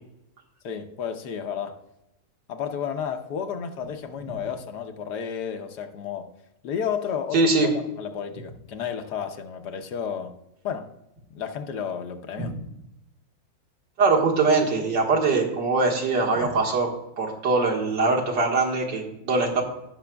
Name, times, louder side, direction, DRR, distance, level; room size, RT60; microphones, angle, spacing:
voice 1, 0.6-1.8 2.5-6.3 6.6-7.7 8.0-10.3 10.6-10.9 11.3-12.6, left 7 dB, 70° left, 6 dB, 1.3 m, -32 dB
voice 2, 7.3-7.7 12.4-12.5 14.0-16.9 17.2-19.6, right 3 dB, 75° right, -1 dB, 2.2 m, -22 dB
17.5 x 6.0 x 2.3 m, 0.87 s
omnidirectional pair, 1.9 m